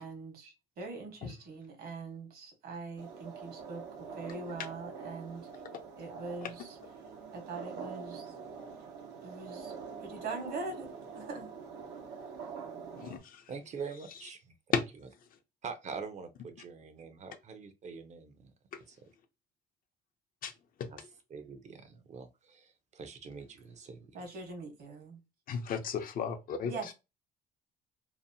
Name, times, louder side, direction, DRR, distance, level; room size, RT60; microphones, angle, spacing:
voice 1, 0.0-5.5 6.0-6.8 7.3-8.3 9.2-9.7 10.0-11.5 24.1-25.2 26.6-26.9, right 3 dB, 65° right, 1.1 m, -42 dB
sound 1, 3.0-13.2, right 6 dB, 90° right, 0.7 m, -45 dB
voice 2, 13.0-13.4 14.7-14.8 20.4-20.5 20.8-21.1 25.5-26.7, left 7 dB, 55° left, 0.5 m, -34 dB
voice 3, 13.5-14.5 15.6-18.5 18.9-19.0 20.9-21.0 21.3-24.2, right 5 dB, 45° right, 0.5 m, -44 dB
2.7 x 2.0 x 2.6 m
cardioid pair, 110°, 17 cm